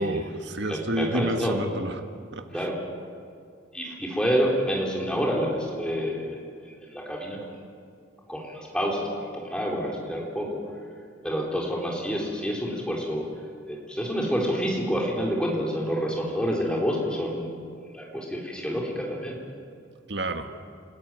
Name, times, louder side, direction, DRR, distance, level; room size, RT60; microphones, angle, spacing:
voice 1, 0.0-2.0 2.3-2.7 20.1-20.5, right 1 dB, 60° right, 7 dB, 1.6 m, -29 dB
voice 2, 0.7-1.6 2.5-2.8 3.7-6.4 6.6-7.4 8.3-10.6 11.2-13.3 13.7-17.5 17.9-19.4, equal, 5° left, -2 dB, 4.0 m, -28 dB
29.0 x 14.5 x 9.2 m, 2.2 s
head